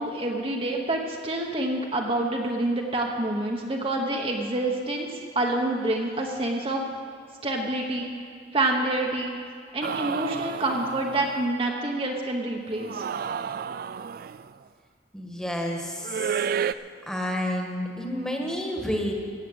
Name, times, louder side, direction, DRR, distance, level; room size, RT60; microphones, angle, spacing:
voice 1, 0.0-6.8 7.4-8.1 8.5-9.4 9.7-13.0, right 2 dB, 30° right, 0 dB, 1.1 m, -27 dB
sound 1, 9.8-11.4 12.8-14.5 16.0-16.7, right 7 dB, 55° right, 0.3 m, -31 dB
voice 2, 15.1-16.4 17.1-19.1, equal, 5° left, 0 dB, 1.6 m, -30 dB
16.5 x 7.6 x 7.9 m, 2.3 s
head